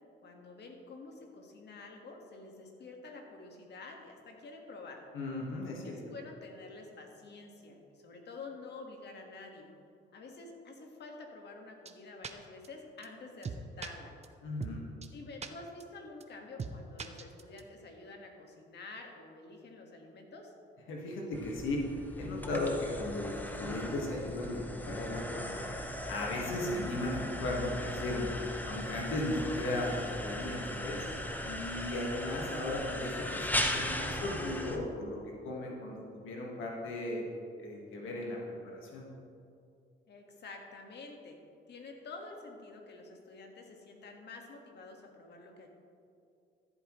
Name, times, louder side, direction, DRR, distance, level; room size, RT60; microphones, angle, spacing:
voice 1, 0.2-5.0 5.8-9.7 10.1-14.1 15.1-20.5 40.1-41.4 41.7-45.7, left 3 dB, 60° left, 2 dB, 1.7 m, -49 dB
voice 2, 5.1-6.1 14.4-14.8 20.9-21.9 22.2-25.7 26.1-28.3 28.5-31.1 31.4-37.3 37.6-38.4 38.6-39.0, left 2 dB, 80° left, -2 dB, 1.6 m, -36 dB
sound 1, 11.9-12.0 12.2-12.3 12.6-12.7 13.0-13.1 13.4-13.9 14.2-14.3 14.6-14.7 15.0-15.1 15.4-15.5 15.8-15.9 16.2-16.3 16.6-16.7 17.0-17.6, right 5 dB, 35° right, 0.7 m, -39 dB
sound 2, 21.3-34.8, left 1 dB, 10° left, 0.9 m, -38 dB
13.5 x 8.2 x 3.1 m, 2.5 s
cardioid pair, 90°, 20 cm